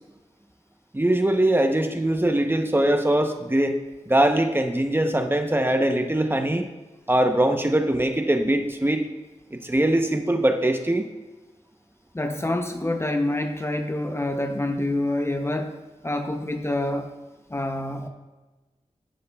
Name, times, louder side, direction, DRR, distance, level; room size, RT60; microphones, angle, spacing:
voice 1, 0.9-3.8 4.1-6.6 7.1-9.0 9.5-11.1, right 1 dB, 15° right, 5 dB, 0.8 m, -22 dB
voice 2, 12.1-15.8 16.0-17.1 17.5-18.1, left 1 dB, 20° left, 5 dB, 0.6 m, -27 dB
14.0 x 6.4 x 2.3 m, 1.2 s
wide cardioid pair, 60°, 13 cm